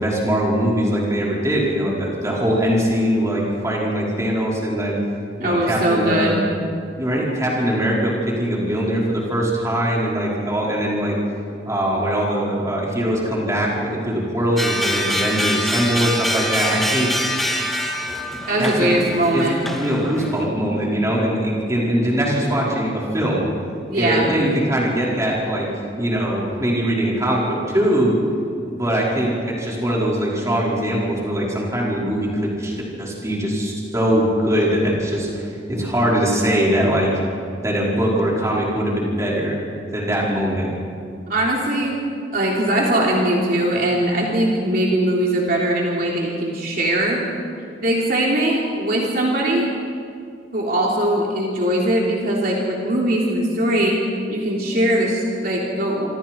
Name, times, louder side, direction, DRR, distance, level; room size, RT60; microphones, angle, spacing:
voice 1, 0.0-5.0 5.4-6.3 7.0-11.2 11.6-17.1 18.3-18.9 19.3-19.5 19.8-23.5 23.9-25.7 26.0-28.2 28.7-37.1 37.6-39.6 39.9-40.7, equal, 20° right, -5 dB, 5.3 m, -21 dB
voice 2, 5.4-6.4 18.5-19.6 23.9-24.3 41.3-42.0 42.3-47.2 47.8-49.7 50.5-54.0 54.3-56.1, right 1 dB, 55° right, -3 dB, 3.4 m, -20 dB
sound 1, 14.6-20.5, left 1 dB, ahead, 2.0 m, -25 dB
26.5 x 26.5 x 4.7 m, 2.3 s
head